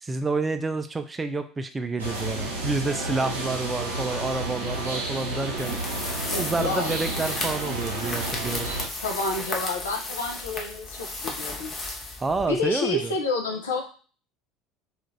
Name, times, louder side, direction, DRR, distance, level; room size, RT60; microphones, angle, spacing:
voice 1, 0.0-5.7 6.4-8.7 12.2-13.1, right 3 dB, 20° right, 8 dB, 0.4 m, -29 dB
sound 1, 2.0-8.9, right 2 dB, 80° right, 0.8 m, -31 dB
sound 2, 5.6-12.7, left 2 dB, 30° left, 0.7 m, -34 dB
voice 2, 6.3-7.0 9.0-11.7 12.5-13.8, left 3 dB, 80° left, 2 dB, 0.6 m, -29 dB
2.4 x 2.4 x 3.1 m, 0.39 s
figure-of-eight pair, 70°, 0 cm